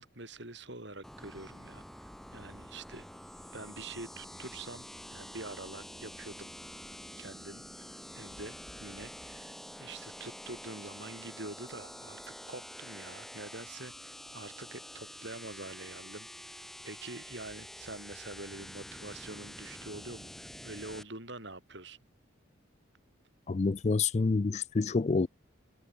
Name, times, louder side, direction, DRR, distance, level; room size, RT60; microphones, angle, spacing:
voice 1, 0.0-3.1 3.5-6.6 6.9-12.2 12.5-22.0, right 2 dB, 55° right, 5.2 m, -46 dB
sound 1, 1.0-21.0, equal, ahead, 1.1 m, -47 dB
voice 2, 23.5-25.3, left 4 dB, 35° left, 0.4 m, -28 dB
head